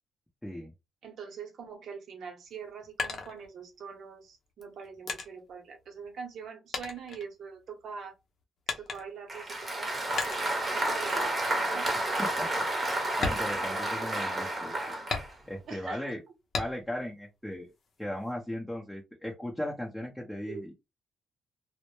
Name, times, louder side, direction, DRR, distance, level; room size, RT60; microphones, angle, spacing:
voice 1, 1.0-8.1 8.7-10.0 10.4-12.0 15.7-16.2 20.5-20.6, right 6 dB, 65° right, 0.8 m, -43 dB
sound 1, 2.5-4.0 4.6-6.4 6.7-7.9 8.7-9.3 10.2-10.7 11.1-11.4 11.8-11.9 12.3-12.5 13.1-14.3 15.1-15.8 16.5-17.1 17.5-18.3, left 4 dB, 55° left, 0.6 m, -37 dB
Applause, 9.3-15.3, right 1 dB, 25° right, 0.8 m, -31 dB
voice 2, 12.2-14.7 15.5-16.2 16.6-17.7 18.0-20.7, left 1 dB, 5° left, 0.6 m, -37 dB
2.1 x 2.1 x 3.0 m
cardioid pair, 90°, 0 cm